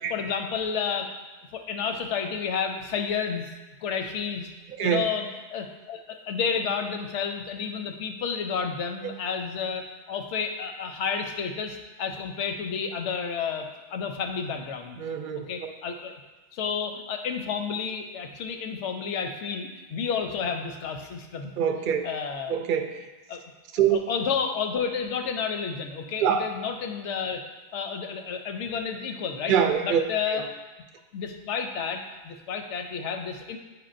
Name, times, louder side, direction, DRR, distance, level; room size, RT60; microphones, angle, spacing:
voice 1, 0.1-1.1 1.5-3.5 3.8-4.5 4.8-15.0 15.5-16.1 16.5-21.5 22.0-22.6 23.3-23.4 23.8-27.4 27.7-29.6 29.8-30.4 31.1-33.6, left 6 dB, 80° left, 5 dB, 1.0 m, -31 dB
voice 2, 15.0-15.5 21.6-22.0 22.5-23.0 23.7-24.0 26.2-26.5 29.5-30.0 30.3-30.5, right 8 dB, 60° right, 6 dB, 0.6 m, -24 dB
8.4 x 4.7 x 2.5 m, 1.2 s
omnidirectional pair, 1.2 m